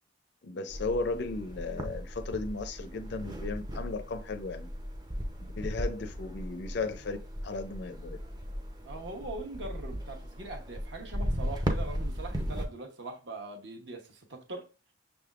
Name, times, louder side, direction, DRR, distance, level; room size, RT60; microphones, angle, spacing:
voice 1, 0.4-4.7 5.6-7.2 7.4-8.2, left 3 dB, 55° left, 0.4 m, -35 dB
sound 1, 0.7-12.6, equal, 20° right, 0.5 m, -37 dB
voice 2, 8.8-14.7, right 2 dB, 55° right, 0.9 m, -42 dB
6.2 x 3.4 x 2.4 m
head